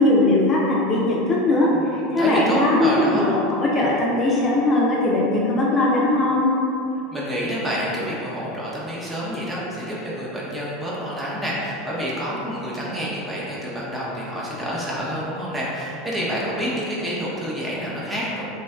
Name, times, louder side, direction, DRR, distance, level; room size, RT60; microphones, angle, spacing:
voice 1, 0.0-6.5, left 2 dB, 30° left, -5 dB, 0.5 m, -19 dB
voice 2, 1.6-3.3 7.1-18.4, equal, 15° right, -6 dB, 0.7 m, -28 dB
3.0 x 2.7 x 2.3 m, 2.8 s
figure-of-eight pair, 80°, 0 cm